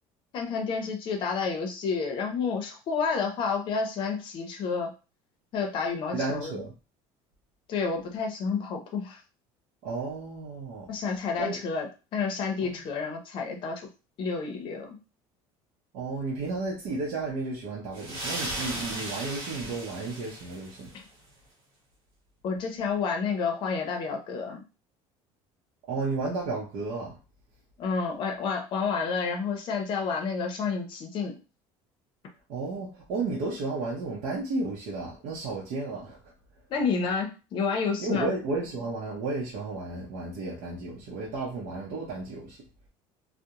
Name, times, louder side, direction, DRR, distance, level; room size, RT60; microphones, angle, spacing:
voice 1, 0.3-4.9 5.5-6.5 7.7-9.2 10.9-11.9 12.1-13.8 14.2-15.0 20.9-21.0 22.4-24.6 27.8-31.4 36.7-38.3, left 5 dB, 45° left, 3 dB, 0.6 m, -30 dB
voice 2, 6.1-6.7 9.8-10.9 11.4-11.6 12.6-12.8 15.9-20.9 25.9-27.2 32.5-36.2 38.0-42.6, right 3 dB, 65° right, -5 dB, 0.7 m, -33 dB
sound 1, 17.9-21.0, right 1 dB, 45° right, 1.3 m, -36 dB
2.3 x 2.1 x 2.8 m, 0.32 s
cardioid pair, 155°, 12 cm